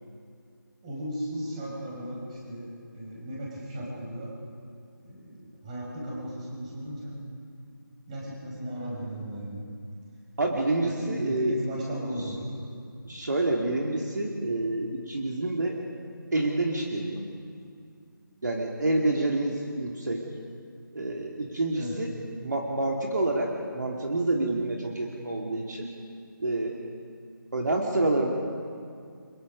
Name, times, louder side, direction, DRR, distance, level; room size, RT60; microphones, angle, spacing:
voice 1, 0.8-2.6 2.9-4.3 5.0-7.1 8.1-9.6 10.8-12.4 21.7-21.9, equal, 20° right, -4 dB, 5.0 m, -36 dB
voice 2, 10.4-11.6 13.0-15.8 16.3-17.2 18.4-20.3 20.9-22.1 22.4-25.9 26.4-26.8 27.5-28.3, right 2 dB, 55° right, 0 dB, 2.6 m, -28 dB
29.0 x 23.5 x 5.3 m, 2.3 s
figure-of-eight pair, 165°, 12 cm